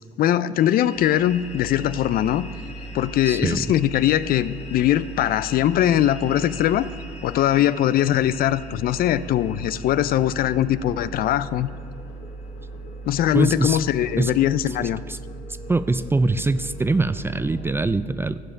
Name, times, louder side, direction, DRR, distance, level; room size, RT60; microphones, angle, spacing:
voice 1, 0.2-2.5 2.9-6.9 7.2-11.7 13.1-15.0, left 12 dB, 60° left, 16 dB, 0.4 m, -21 dB
sound 1, 0.6-17.7, left 3 dB, 40° left, 1.7 m, -44 dB
sound 2, 0.9-7.1 7.4-18.0, right 3 dB, 75° right, 1.1 m, -39 dB
voice 2, 3.3-3.6 13.3-13.8 14.2-14.3 15.1-15.2 15.7-18.4, right 3 dB, 15° right, 14 dB, 0.3 m, -23 dB
14.5 x 5.1 x 6.3 m, 2.4 s
supercardioid pair, 85°, 17 cm